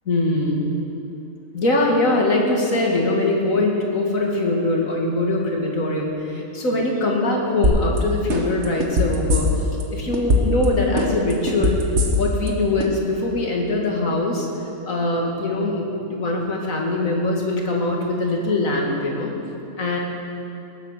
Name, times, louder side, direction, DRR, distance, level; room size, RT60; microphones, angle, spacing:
voice 1, 0.1-0.6 1.5-9.5 9.9-11.8 12.2-14.5 14.9-19.3 19.8-20.0, left 2 dB, 75° left, -1 dB, 2.4 m, -22 dB
sound 1, 7.6-8.0 8.3-9.8 10.1-10.6 11.0-12.5 12.8-12.9, left 1 dB, 55° right, 1.6 m, -19 dB
19.0 x 8.6 x 6.6 m, 2.7 s
omnidirectional pair, 1.4 m